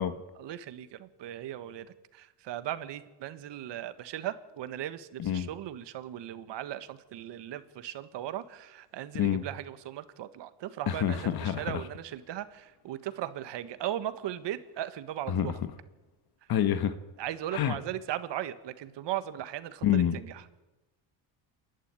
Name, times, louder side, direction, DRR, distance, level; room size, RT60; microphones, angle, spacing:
voice 1, 0.3-15.6 17.2-20.4, right 12 dB, 55° right, 1.7 m, -38 dB
voice 2, 10.9-11.8 15.3-15.5 16.5-17.0 17.5-17.8 19.8-20.2, left 10 dB, 50° left, 1.5 m, -27 dB
27.5 x 11.5 x 9.7 m
cardioid pair, 105°, 49 cm